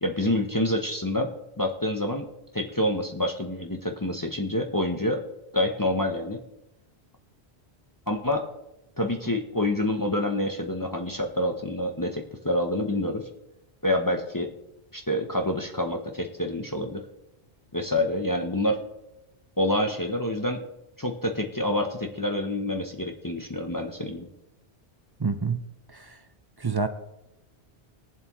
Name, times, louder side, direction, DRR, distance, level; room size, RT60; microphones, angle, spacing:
voice 1, 0.0-1.3 1.6-2.3 2.5-5.2 5.5-6.4 8.1-8.5 9.0-13.3 13.8-14.5 14.9-17.0 17.7-18.8 19.6-20.6 21.0-24.3, left 1 dB, 20° left, 3 dB, 0.7 m, -27 dB
voice 2, 25.2-25.6 25.9-26.1 26.6-26.9, right 5 dB, 30° right, 7 dB, 0.5 m, -27 dB
20.5 x 7.4 x 3.0 m, 0.93 s
omnidirectional pair, 1.1 m